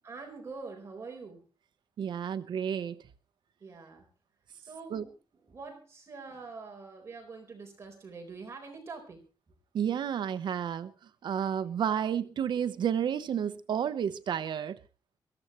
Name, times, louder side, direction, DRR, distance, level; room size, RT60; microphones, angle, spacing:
voice 1, 0.0-1.5 3.6-4.1 4.6-9.5 11.4-11.8, right 4 dB, 35° right, 4.2 m, -45 dB
voice 2, 2.0-2.9 4.9-5.0 9.7-10.9 11.2-14.8, right 8 dB, 70° right, 0.9 m, -31 dB
23.0 x 14.5 x 3.1 m
wide cardioid pair, 175°, 8 cm